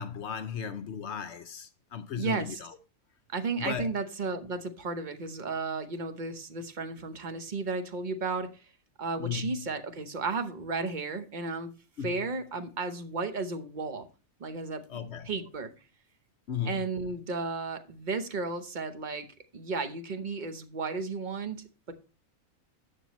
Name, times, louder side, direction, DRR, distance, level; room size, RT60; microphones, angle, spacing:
voice 1, 0.0-2.8 3.6-3.9 9.2-9.6 12.0-12.3 14.9-15.3 16.5-16.9, left 7 dB, 60° left, 0.8 m, -36 dB
voice 2, 2.2-2.6 3.3-8.5 9.0-11.7 12.0-14.1 14.4-15.7 16.6-19.3 19.5-21.9, right 4 dB, 40° right, 0.9 m, -34 dB
11.5 x 6.6 x 3.0 m
omnidirectional pair, 1.5 m